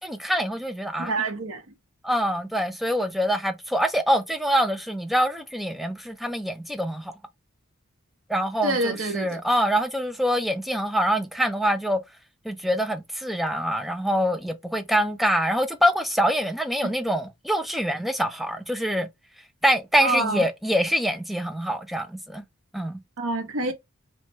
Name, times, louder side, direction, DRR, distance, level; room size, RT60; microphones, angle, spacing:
voice 1, 0.0-1.1 2.0-7.1 8.3-12.0 12.5-19.1 19.6-22.4 22.7-23.0, equal, ahead, 0.3 m, -25 dB
voice 2, 1.0-1.6 8.6-9.4 16.8-16.9 20.0-20.5 23.2-23.7, right 2 dB, 85° right, 0.9 m, -27 dB
3.1 x 2.2 x 2.9 m
head